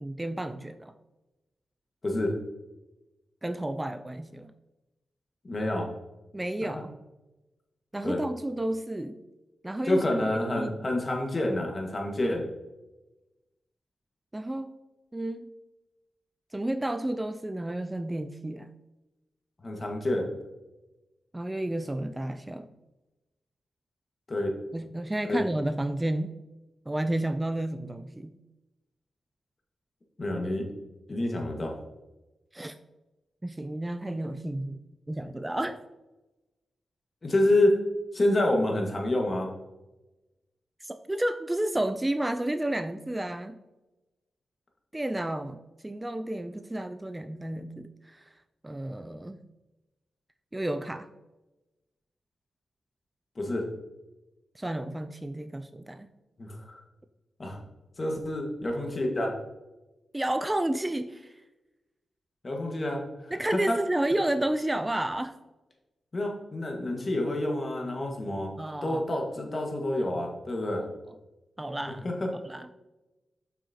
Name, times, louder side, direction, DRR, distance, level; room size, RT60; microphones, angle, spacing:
voice 1, 0.0-0.9 3.4-4.5 6.3-6.9 7.9-9.2 9.6-10.2 10.6-10.7 14.3-14.7 15.1-15.4 16.5-18.7 21.3-22.7 24.7-26.3 26.9-28.4 32.5-32.7 33.4-34.8 35.1-35.8 40.8-43.6 44.9-48.3 48.6-49.4 50.5-51.1 54.6-56.1 60.1-61.3 63.3-65.3 68.6-69.0 70.7-71.2 71.6-72.1 72.4-72.7, right 1 dB, 15° right, 10 dB, 0.4 m, -31 dB
voice 2, 2.0-2.4 5.4-5.9 6.6-6.7 8.0-8.2 9.9-12.5 19.6-20.3 24.3-24.5 25.2-25.4 30.2-30.7 31.1-31.8 37.2-37.8 38.1-39.5 53.3-53.7 56.4-56.8 57.4-57.6 58.0-59.3 62.4-63.3 63.7-63.8 66.1-68.5 68.8-70.8 72.0-72.3, left 1 dB, 40° left, 1 dB, 1.6 m, -28 dB
7.0 x 5.8 x 2.8 m, 1.0 s
cardioid pair, 70°, 0 cm